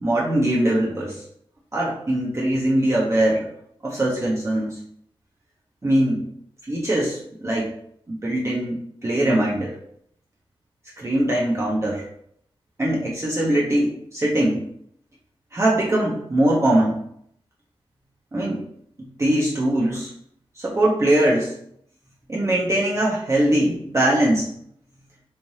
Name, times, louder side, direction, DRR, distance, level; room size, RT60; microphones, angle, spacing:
voice 1, 0.0-1.2 1.7-3.5 3.8-4.8 5.8-6.3 6.7-7.7 8.1-9.7 11.0-12.0 12.8-14.7 15.5-17.0 18.3-18.6 19.0-20.1 20.6-21.6 22.3-24.5, right 1 dB, 30° right, -4 dB, 0.7 m, -21 dB
3.2 x 2.5 x 2.7 m, 0.69 s
cardioid pair, 65°, 10 cm